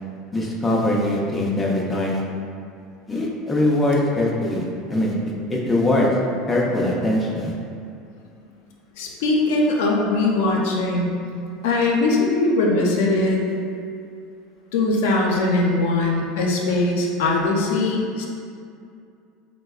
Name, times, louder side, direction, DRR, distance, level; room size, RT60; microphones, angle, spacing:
voice 1, 0.3-2.2 3.1-4.6 4.9-5.1 5.5-6.1 6.5-7.5, left 1 dB, 10° left, -4 dB, 0.3 m, -21 dB
voice 2, 9.0-11.1 11.6-13.4 14.7-18.3, left 2 dB, 85° left, -1 dB, 0.5 m, -20 dB
4.3 x 2.0 x 2.3 m, 2.4 s
cardioid pair, 155°, 0 cm